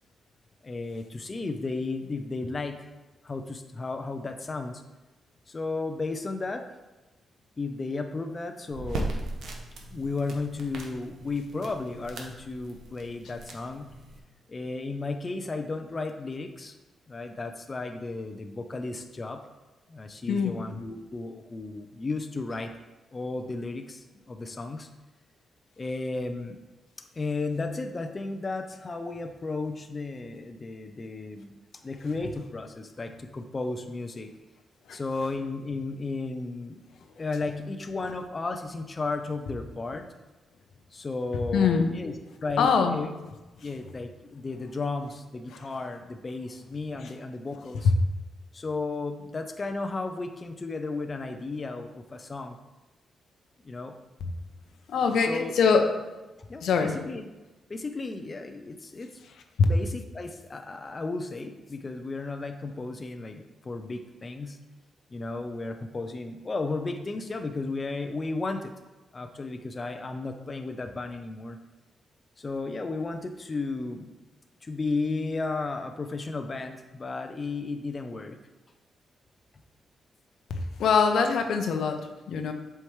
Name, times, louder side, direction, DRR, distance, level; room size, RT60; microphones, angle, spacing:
voice 1, 0.6-2.9 3.2-4.8 5.5-6.7 7.6-9.1 9.9-13.9 14.5-16.8 17.1-19.4 19.9-22.7 23.1-24.9 25.8-26.6 27.2-31.5 31.8-34.3 34.9-36.8 37.2-40.1 40.9-42.1 42.4-43.1 43.6-47.9 48.5-52.6 53.6-54.0 55.2-55.5 56.5-57.3 57.7-59.1 59.6-64.6 65.1-68.7 69.1-71.6 72.4-74.1 74.6-78.4, left 3 dB, 30° left, 6 dB, 0.5 m, -34 dB
sound 1, 8.7-14.2, right 2 dB, 80° right, 1.0 m, -38 dB
voice 2, 20.3-20.6 34.9-35.0 41.3-41.9 42.6-43.0 45.5-45.7 47.0-47.1 54.9-55.9 56.6-57.0 80.5-82.5, left 5 dB, 80° left, 6 dB, 0.7 m, -24 dB
7.7 x 4.5 x 3.2 m, 1.1 s
cardioid pair, 90°, 0 cm